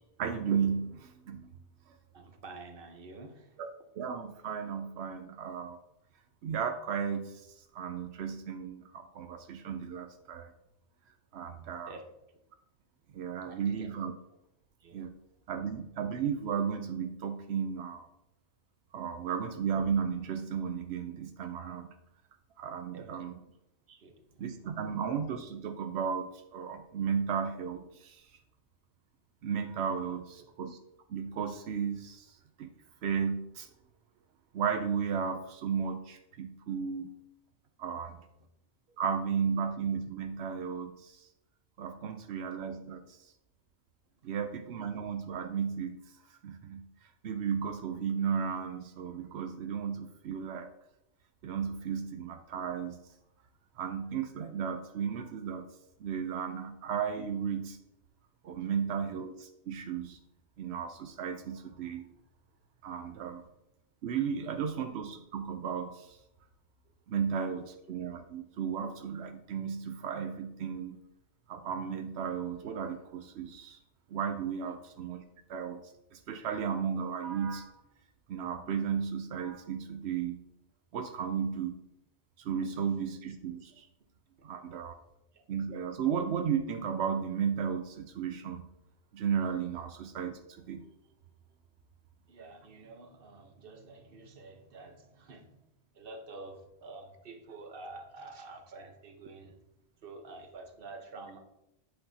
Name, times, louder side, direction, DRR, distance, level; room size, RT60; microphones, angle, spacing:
voice 1, 0.2-1.5 3.6-3.7 4.0-5.8 6.4-7.4 7.7-10.5 11.3-11.9 13.1-14.1 14.9-15.1 15.5-18.1 18.9-21.9 22.6-23.3 24.4-28.2 29.4-30.8 31.1-32.7 33.0-33.7 34.5-37.1 37.8-38.2 39.0-41.3 41.8-43.2 44.2-46.0 46.4-46.8 47.2-50.7 51.4-53.0 53.8-55.7 56.0-57.8 58.4-60.2 60.6-62.1 62.8-63.4 64.0-66.2 67.1-71.0 71.5-73.8 74.1-75.2 75.5-75.8 76.1-77.7 78.3-80.4 80.9-81.8 82.4-83.9 84.4-84.9 85.5-88.6 89.1-90.4 90.7-90.8, right 7 dB, 90° right, 7 dB, 0.9 m, -34 dB
voice 2, 2.1-3.6 11.9-12.1 13.4-13.9 14.8-15.0 22.9-23.3 23.9-24.4 30.1-30.2 38.9-39.0 74.7-74.8 92.3-95.6 96.0-99.6 100.0-101.4, right 3 dB, 60° right, 5 dB, 1.2 m, -48 dB
8.7 x 8.1 x 2.7 m, 0.87 s
omnidirectional pair, 1.1 m